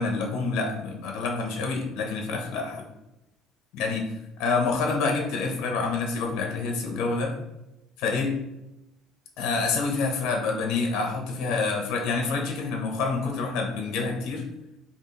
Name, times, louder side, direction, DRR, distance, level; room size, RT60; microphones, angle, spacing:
voice 1, 0.0-2.7 3.7-4.0 4.4-7.3 8.0-8.4 9.4-14.5, left 4 dB, 75° left, 2 dB, 0.8 m, -27 dB
4.3 x 2.9 x 3.2 m, 0.94 s
cardioid pair, 120°, 0 cm